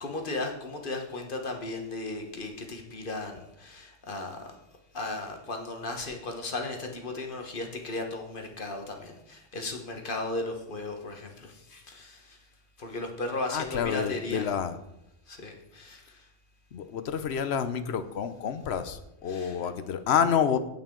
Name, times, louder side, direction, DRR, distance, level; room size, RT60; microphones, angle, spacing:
voice 1, 0.0-4.6 4.9-12.4 12.8-14.5 15.3-16.3 19.3-19.6, left 2 dB, 50° left, 3 dB, 1.4 m, -36 dB
voice 2, 13.5-14.8 16.7-20.6, left 7 dB, 70° left, 11 dB, 0.9 m, -28 dB
16.0 x 5.6 x 3.7 m, 0.86 s
omnidirectional pair, 1.2 m